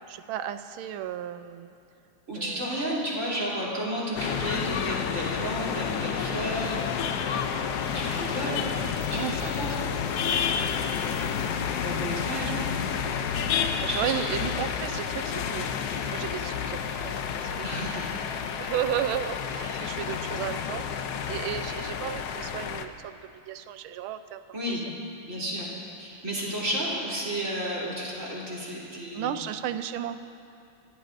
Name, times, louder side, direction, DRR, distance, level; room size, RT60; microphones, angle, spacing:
voice 1, 0.1-1.7 2.3-2.9 4.0-4.1 6.4-6.7 9.1-9.9 10.6-11.0 12.4-12.5 12.9-13.5 13.8-18.0 18.6-20.8 21.3-23.2 23.4-24.4 24.7-24.8 29.1-30.2, right 10 dB, 75° right, 10 dB, 1.4 m, -34 dB
voice 2, 2.3-6.8 7.9-8.6 9.1-9.7 11.8-12.6 13.9-14.1 17.6-18.3 19.6-19.9 24.5-24.9 25.3-25.7 26.0-29.3, equal, 35° right, -7 dB, 3.6 m, -32 dB
sound 1, 4.2-22.9, left 7 dB, 70° left, 0.9 m, -30 dB
29.0 x 14.5 x 2.6 m, 2.6 s
omnidirectional pair, 2.4 m